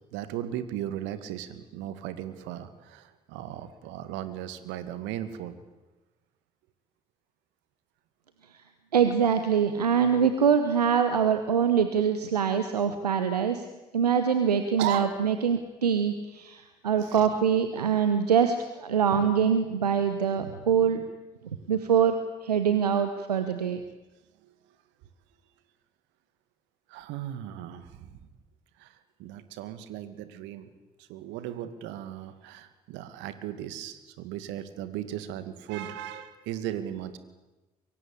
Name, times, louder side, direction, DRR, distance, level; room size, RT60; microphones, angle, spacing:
voice 1, 0.1-5.6 14.8-15.1 17.0-17.3 21.5-21.7 24.4-24.5 26.9-28.3 28.8-30.7 31.0-37.2, right 11 dB, 70° right, 12 dB, 2.1 m, -37 dB
voice 2, 8.9-13.7 13.9-21.0 21.7-23.8, right 7 dB, 90° right, 9 dB, 1.0 m, -24 dB
24.0 x 23.0 x 8.4 m, 1.1 s
figure-of-eight pair, 45°, 20 cm